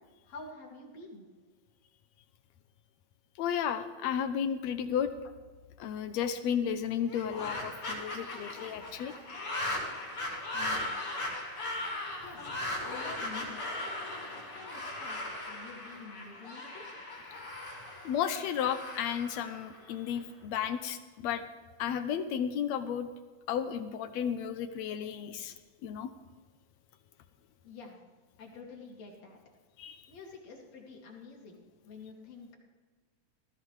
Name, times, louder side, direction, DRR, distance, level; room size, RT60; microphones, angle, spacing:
voice 1, 0.3-1.2 10.5-11.1 12.2-12.5 12.8-13.8 14.5-16.8 27.6-28.0 28.4-29.4 30.1-32.6, left 4 dB, 55° left, -1 dB, 3.6 m, -48 dB
voice 2, 3.4-5.1 5.8-9.1 18.0-21.4 21.8-23.1 23.5-25.5 25.8-26.1 29.8-30.0, left 8 dB, 75° left, 9 dB, 1.7 m, -33 dB
sound 1, 7.0-20.2, left 1 dB, 40° left, 5.7 m, -38 dB
18.5 x 14.5 x 3.3 m, 1.4 s
omnidirectional pair, 3.7 m